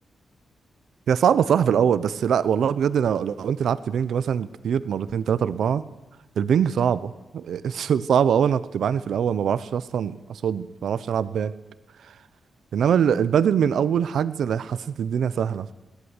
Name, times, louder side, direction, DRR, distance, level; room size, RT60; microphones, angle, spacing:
voice 1, 1.1-5.8 6.4-11.5 12.7-15.7, right 8 dB, 85° right, 15 dB, 0.8 m, -23 dB
20.5 x 18.0 x 9.8 m, 1.1 s
wide cardioid pair, 135°, 0 cm